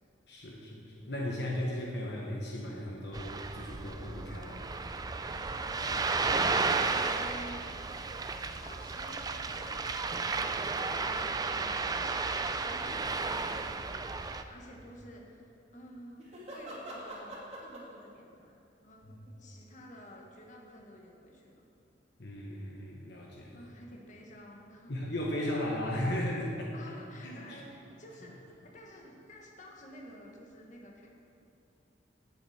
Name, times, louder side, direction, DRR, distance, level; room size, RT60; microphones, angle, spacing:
voice 1, 0.3-4.7 19.0-19.1 22.2-23.6 24.9-26.7 27.2-27.6, left 1 dB, 60° left, -2 dB, 1.3 m, -36 dB
Ocean, 3.1-14.4, right 4 dB, 20° right, 0.4 m, -33 dB
voice 2, 5.4-7.6 7.9-8.2 8.6-11.9 12.6-19.0 19.4-21.6 23.5-24.9 26.7-31.1, equal, 40° left, -1 dB, 1.6 m, -51 dB
sound 1, 16.2-18.0 19.1-20.2 20.9-21.0 21.9-22.0 26.8-29.2, right 1 dB, 35° right, 2.6 m, -47 dB
17.5 x 7.3 x 4.4 m, 2.6 s
head